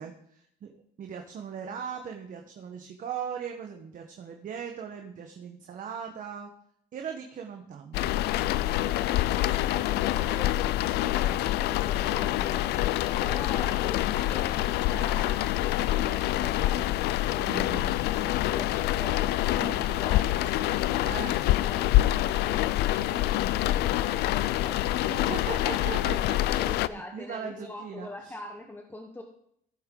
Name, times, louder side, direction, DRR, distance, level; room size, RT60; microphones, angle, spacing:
voice 1, 0.0-6.5 6.9-8.8 17.4-17.9 19.6-20.0 21.0-21.4 25.0-28.3, right 7 dB, 50° right, 3 dB, 1.2 m, -39 dB
sound 1, 7.9-26.9, left 15 dB, 80° left, 0.5 m, -26 dB
voice 2, 9.0-17.7 18.0-21.3 21.6-25.6 26.4-29.2, left 2 dB, 10° left, 3 dB, 1.2 m, -43 dB
sound 2, 9.5-16.7, left 4 dB, 30° left, 1.4 m, -49 dB
15.0 x 8.0 x 3.9 m, 0.70 s
cardioid pair, 110°, 17 cm